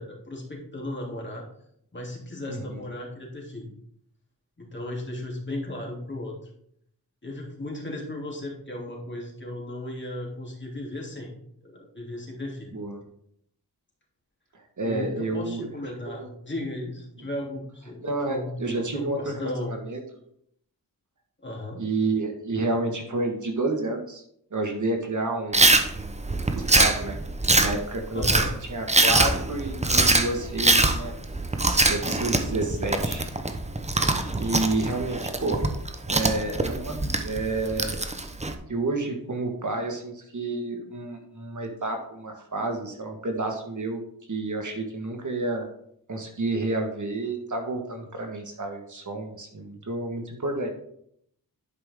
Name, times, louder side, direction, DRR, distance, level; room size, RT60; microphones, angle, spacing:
voice 1, 0.0-1.4 1.9-3.7 4.6-6.3 7.2-11.3 11.6-12.7 14.8-18.0 18.3-18.6 18.9-19.7 21.4-21.9 28.1-28.5, left 1 dB, 30° left, -2 dB, 3.1 m, -35 dB
voice 2, 2.5-2.9 12.7-13.0 14.5-15.7 16.0-16.3 18.0-20.0 21.8-24.2 24.5-27.2 27.5-31.1 31.6-33.3 34.4-35.6 36.1-38.0 38.7-44.0 44.3-45.7 46.1-50.7, right 2 dB, 50° right, 3 dB, 1.6 m, -30 dB
Chewing mastication, 25.5-38.5, right 2 dB, 20° right, 0.9 m, -23 dB
11.0 x 5.4 x 3.7 m, 0.70 s
cardioid pair, 50°, 38 cm